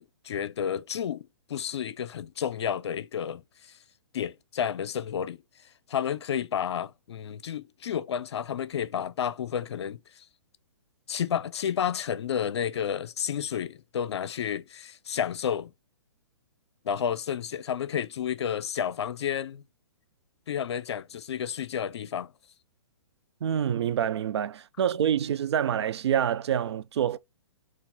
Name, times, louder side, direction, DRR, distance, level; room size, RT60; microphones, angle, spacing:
voice 1, 0.0-3.4 4.1-5.4 5.9-10.2 11.1-15.7 16.8-19.6 20.5-22.3, left 8 dB, 70° left, 0.6 m, -31 dB
voice 2, 23.4-27.2, right 9 dB, 70° right, 0.4 m, -27 dB
4.2 x 2.5 x 3.7 m
hypercardioid pair, 135°, 15 cm